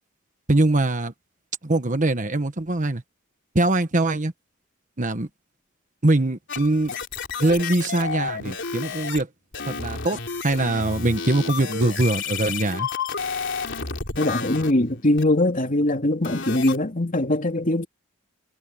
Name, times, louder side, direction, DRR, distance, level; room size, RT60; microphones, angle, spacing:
voice 1, 0.5-1.1 1.6-3.0 3.5-4.3 5.0-5.3 6.0-6.9 7.4-9.3 9.7-12.9, right 2 dB, 40° right, 1.3 m, -22 dB
sound 1, 6.5-9.2 9.5-14.7 15.2-15.3 16.2-16.8, left 5 dB, 60° left, 3.7 m, -31 dB
voice 2, 14.2-17.9, left 1 dB, 40° left, 2.6 m, -22 dB
head